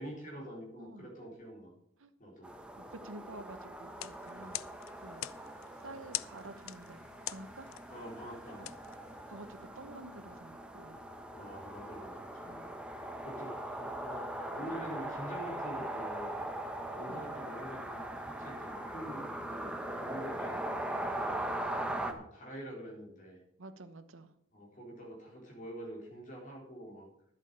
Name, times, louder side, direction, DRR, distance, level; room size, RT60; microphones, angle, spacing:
voice 1, 0.0-1.7 2.2-2.5 4.4-4.6 7.9-8.6 11.3-16.3 16.9-20.6 21.7-23.4 24.5-27.1, equal, 35° left, -2 dB, 4.1 m, -46 dB
voice 2, 0.8-1.1 2.0-2.1 2.8-4.6 5.0-5.3 5.8-7.0 7.3-7.7 8.6-8.7 9.3-11.0 12.5-12.8 17.1-17.3 23.6-24.3, right 2 dB, 65° right, 10 dB, 1.0 m, -49 dB
sound 1, 2.4-22.1, right 1 dB, 5° right, 1.0 m, -40 dB
sound 2, 3.8-9.6, left 15 dB, 70° left, 0.4 m, -45 dB
10.5 x 8.1 x 7.0 m, 0.73 s
head